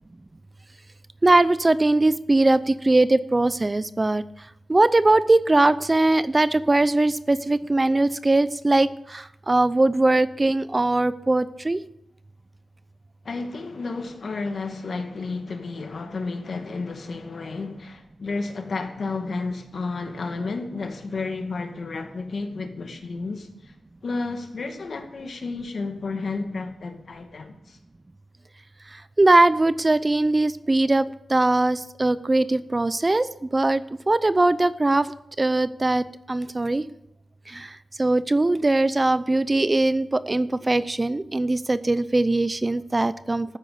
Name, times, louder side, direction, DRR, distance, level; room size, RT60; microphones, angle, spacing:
voice 1, 1.2-4.2 4.7-11.8 28.9-35.1 35.4-36.9 37.5-43.6, right 2 dB, 25° right, 0.5 m, -21 dB
voice 2, 13.2-23.7 24.0-27.8, left 3 dB, 60° left, 2.1 m, -32 dB
13.5 x 9.7 x 6.9 m
wide cardioid pair, 85°, 0 cm